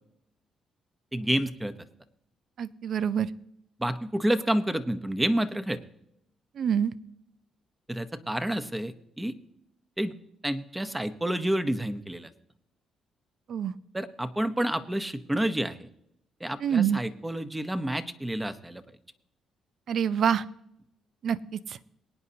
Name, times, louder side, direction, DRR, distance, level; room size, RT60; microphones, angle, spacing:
voice 1, 1.1-1.7 3.8-5.8 7.9-9.3 10.0-10.1 10.4-12.3 13.9-15.9 16.4-18.8, right 1 dB, 10° right, 10 dB, 0.9 m, -29 dB
voice 2, 2.6-3.3 6.6-6.9 13.5-13.7 16.6-17.0 19.9-20.4 21.2-21.4, right 8 dB, 60° right, 16 dB, 0.6 m, -25 dB
23.0 x 9.6 x 2.9 m, 0.77 s
cardioid pair, 90°, 0 cm